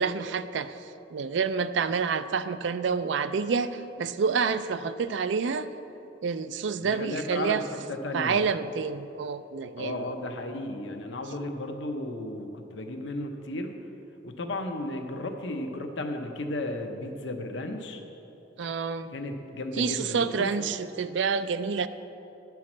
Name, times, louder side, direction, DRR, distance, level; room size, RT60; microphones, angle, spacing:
voice 1, 0.0-5.7 6.2-7.6 8.1-10.1 18.6-19.1 19.8-21.9, right 5 dB, 70° right, 12 dB, 0.4 m, -28 dB
voice 2, 6.8-8.4 9.8-13.8 14.2-18.0 19.1-20.5, left 1 dB, 75° left, 5 dB, 0.8 m, -34 dB
11.0 x 4.6 x 7.3 m, 2.9 s
head